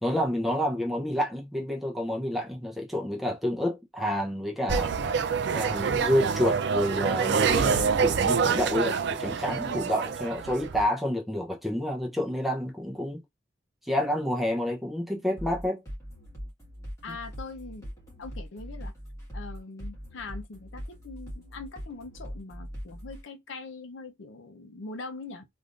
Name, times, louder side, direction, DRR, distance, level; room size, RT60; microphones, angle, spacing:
voice 1, 0.0-4.9 5.5-13.2 13.8-15.8 17.1-17.2, equal, ahead, 0.6 m, -29 dB
sound 1, 4.7-10.8, right 6 dB, 60° right, 0.4 m, -26 dB
sound 2, 15.4-23.2, equal, 15° left, 1.5 m, -41 dB
voice 2, 17.0-17.9 18.2-18.9 19.3-25.5, left 3 dB, 70° left, 0.6 m, -42 dB
3.5 x 2.5 x 2.4 m
head